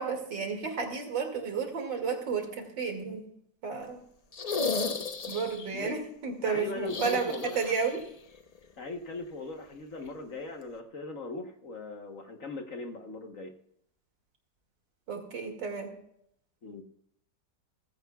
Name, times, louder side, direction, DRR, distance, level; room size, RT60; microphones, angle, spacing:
voice 1, 0.0-3.2 3.6-4.0 5.3-8.0 15.1-15.9, right 5 dB, 80° right, 3 dB, 3.0 m, -32 dB
sound 1, 4.3-5.7 6.8-8.0 8.3-8.4 10.0-10.1, left 4 dB, 90° left, 0.3 m, -33 dB
voice 2, 6.4-7.7 8.8-13.5 16.6-16.8, left 3 dB, 50° left, 4 dB, 1.4 m, -39 dB
18.5 x 15.5 x 2.3 m, 0.72 s
omnidirectional pair, 2.0 m